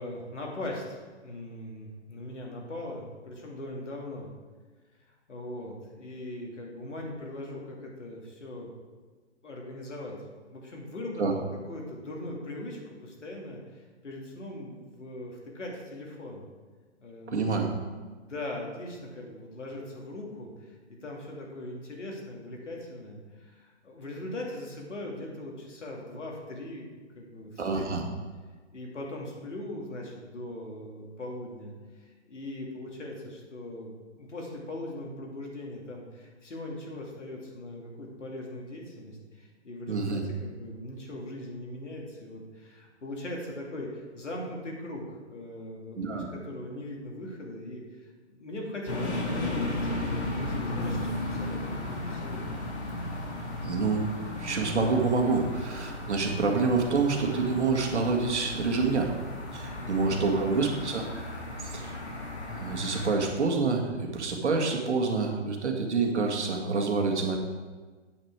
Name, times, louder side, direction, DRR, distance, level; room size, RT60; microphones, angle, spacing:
voice 1, 0.0-4.3 5.3-8.7 9.4-10.2 10.5-16.4 17.0-17.7 18.1-28.1 28.7-47.8 48.3-52.6 59.8-60.7, left 1 dB, 80° left, -1 dB, 2.6 m, -40 dB
voice 2, 17.3-17.7 27.6-28.0 39.9-40.2 46.0-46.3 53.6-54.1 54.4-59.1 59.5-61.0 61.6-62.0 62.5-67.4, right 4 dB, 70° right, 2 dB, 1.8 m, -27 dB
sound 1, 48.9-63.2, left 2 dB, 65° left, 2.5 m, -35 dB
8.5 x 7.9 x 4.7 m, 1.4 s
figure-of-eight pair, 140°, 35 cm